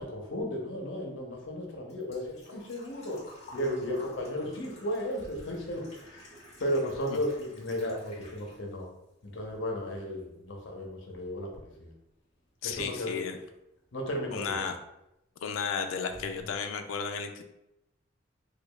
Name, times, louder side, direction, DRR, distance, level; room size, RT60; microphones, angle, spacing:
voice 1, 0.0-3.2 3.5-5.8 6.1-6.3 6.6-8.9 9.3-11.5 11.8-11.9 12.6-13.2 13.9-14.7, equal, 65° left, 0 dB, 0.8 m, -34 dB
Engine / Trickle dribble / Fill (with liquid), 1.0-8.9 9.2-10.2 10.5-10.6 12.5-12.6 12.8-13.1 13.5-13.6 13.8-13.9, left 1 dB, 35° left, 1.4 m, -53 dB
voice 2, 12.6-13.4 14.3-14.8 15.4-17.4, left 6 dB, 90° left, 6 dB, 0.4 m, -33 dB
sound 1, 16.1-16.6, left 2 dB, 5° left, 0.4 m, -47 dB
4.9 x 2.3 x 2.3 m, 0.86 s
head